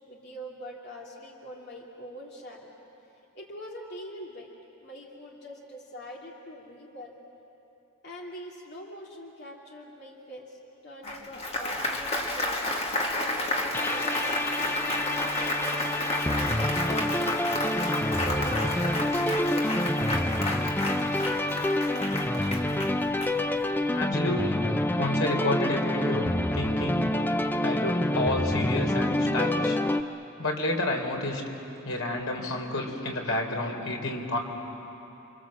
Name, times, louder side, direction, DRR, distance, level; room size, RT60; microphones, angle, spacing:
voice 1, 0.1-2.7 3.3-4.5 4.8-7.1 8.0-12.6 13.1-15.7 16.5-20.0, equal, 50° left, -2 dB, 2.9 m, -43 dB
Applause, 11.0-23.8, left 1 dB, 30° left, 2.1 m, -31 dB
sound 1, 13.7-30.0, left 1 dB, 10° left, 0.5 m, -27 dB
voice 2, 23.9-24.6 25.0-27.1 27.6-29.8 30.4-31.4 31.8-34.4, left 2 dB, 75° left, 1 dB, 3.6 m, -30 dB
29.5 x 25.0 x 7.6 m, 3.0 s
head